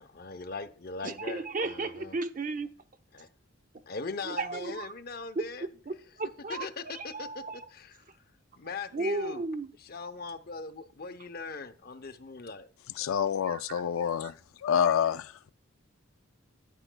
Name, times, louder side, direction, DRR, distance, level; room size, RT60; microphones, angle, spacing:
voice 1, 0.0-2.1 3.1-3.3 3.9-5.7 6.5-7.4 7.7-7.9 8.6-9.4 9.9-12.7, left 4 dB, 45° left, 0.7 m, -40 dB
voice 2, 1.0-2.7 4.2-4.9 5.3-7.7 8.9-9.7 13.5-13.8 14.2-14.3, right 3 dB, 40° right, 0.6 m, -35 dB
voice 3, 12.9-14.3 14.6-15.5, left 8 dB, 80° left, 0.4 m, -27 dB
10.0 x 10.0 x 2.2 m
head